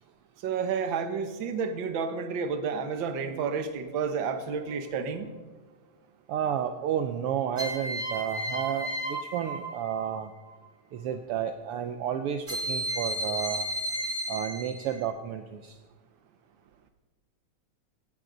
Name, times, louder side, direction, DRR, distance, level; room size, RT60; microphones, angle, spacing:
voice 1, 0.4-5.3, right 6 dB, 55° right, 8 dB, 1.5 m, -30 dB
sound 1, 4.5-5.0 7.6-10.2 12.5-15.0, right 1 dB, 20° right, 3.7 m, -33 dB
voice 2, 6.3-10.3 10.9-13.7 14.3-15.7, right 9 dB, 75° right, 7 dB, 1.4 m, -31 dB
17.5 x 16.0 x 4.0 m, 1.2 s
omnidirectional pair, 3.3 m